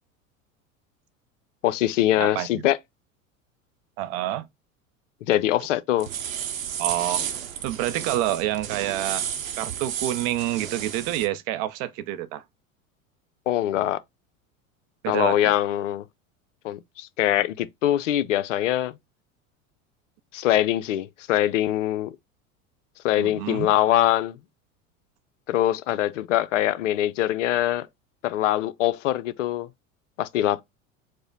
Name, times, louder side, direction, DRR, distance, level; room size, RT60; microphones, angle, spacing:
voice 1, 1.6-2.8 5.3-6.1 13.5-14.0 15.1-16.0 16.6-18.9 20.3-22.1 23.0-24.4 25.5-27.9 28.2-29.7 30.2-30.6, left 13 dB, 65° left, 0.5 m, -23 dB
voice 2, 2.2-2.6 4.0-4.4 6.8-7.2 7.6-9.3 9.6-12.4 15.0-15.5 23.2-23.7, right 14 dB, 35° right, 0.5 m, -28 dB
sound 1, 6.0-11.3, right 9 dB, 70° right, 0.7 m, -32 dB
4.8 x 2.1 x 3.9 m
figure-of-eight pair, 75°, 41 cm